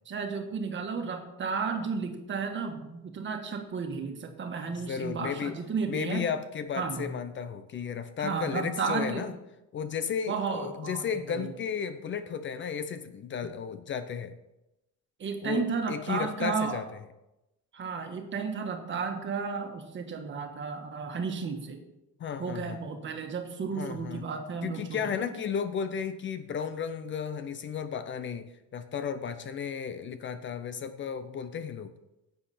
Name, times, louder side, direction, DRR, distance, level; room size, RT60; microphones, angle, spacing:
voice 1, 0.1-6.3 6.8-7.1 8.2-9.3 10.3-11.5 13.4-13.5 15.2-16.8 17.7-21.8 22.4-25.3, right 5 dB, 40° right, 5 dB, 1.6 m, -33 dB
voice 2, 4.9-5.6 5.9-9.3 9.7-14.4 15.4-16.8 22.2-22.8 23.7-24.2 24.6-31.9, left 7 dB, 40° left, 11 dB, 0.7 m, -34 dB
10.5 x 8.0 x 4.3 m, 0.93 s
cardioid pair, 130°, 30 cm